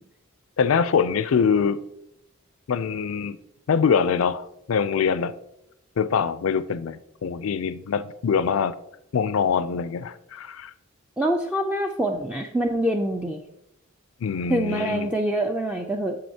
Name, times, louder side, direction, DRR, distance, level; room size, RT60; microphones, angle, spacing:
voice 1, 0.6-1.8 2.7-3.4 3.7-5.3 6.0-8.7 9.1-10.7 14.2-15.1, left 6 dB, 70° left, 0.4 m, -24 dB
voice 2, 11.2-13.4 14.5-16.2, right 1 dB, 5° right, 0.3 m, -25 dB
7.7 x 6.9 x 2.8 m
head